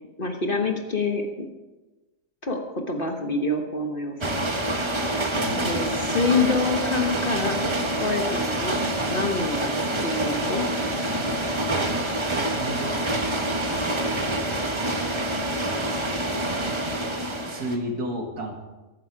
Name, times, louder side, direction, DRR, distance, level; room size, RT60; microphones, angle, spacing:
voice 1, 0.2-1.5 2.4-2.6 2.9-4.5 5.6-8.8 9.1-9.7 10.0-10.6, left 3 dB, 35° left, 3 dB, 1.4 m, -26 dB
sound 1, 4.2-17.8, right 1 dB, 20° right, 1.0 m, -26 dB
voice 2, 5.3-5.7 12.5-13.6 16.6-16.7 17.5-18.5, right 1 dB, 70° right, 2 dB, 2.5 m, -32 dB
14.5 x 13.5 x 4.7 m, 1.1 s
omnidirectional pair, 1.7 m